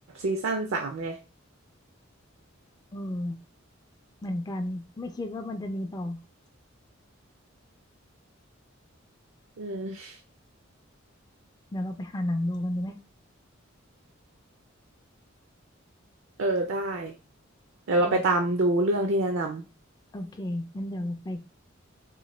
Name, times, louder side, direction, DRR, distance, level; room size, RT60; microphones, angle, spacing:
voice 1, 0.2-1.2 9.6-10.2 16.4-17.1 17.9-19.6, right 2 dB, 70° right, 4 dB, 0.5 m, -26 dB
voice 2, 2.9-3.4 4.2-6.2 11.7-13.0 18.0-18.2 20.1-21.4, left 1 dB, 20° left, 5 dB, 0.3 m, -32 dB
3.8 x 2.1 x 3.1 m, 0.31 s
head